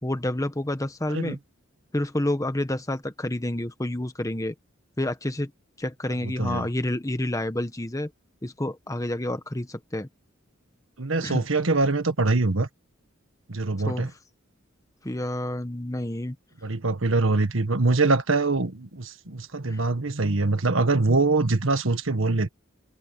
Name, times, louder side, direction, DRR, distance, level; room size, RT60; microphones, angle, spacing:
voice 1, 0.0-1.4 1.9-4.5 5.0-5.5 5.8-8.1 8.4-10.1 11.2-11.4 13.8-14.1 15.0-16.4 19.7-19.8, left 1 dB, 15° left, 1.3 m, -29 dB
voice 2, 11.0-12.7 13.5-14.1 16.6-22.5, right 3 dB, 75° right, 1.6 m, -23 dB
head